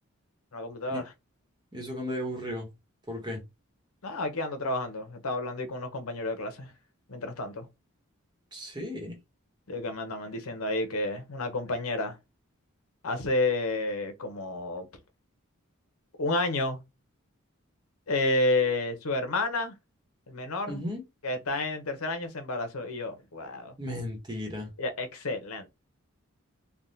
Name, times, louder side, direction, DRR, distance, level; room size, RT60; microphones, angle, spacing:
voice 1, 0.5-1.0 4.0-6.7 7.1-7.7 9.7-12.2 13.0-14.9 16.2-16.8 18.1-19.8 20.3-20.8 21.2-23.8 24.8-25.7, left 2 dB, 90° left, 0.7 m, -30 dB
voice 2, 1.7-2.7 3.1-3.4 8.5-9.2 20.7-21.0 23.8-24.7, left 1 dB, 20° right, 0.9 m, -35 dB
3.4 x 2.1 x 2.7 m
head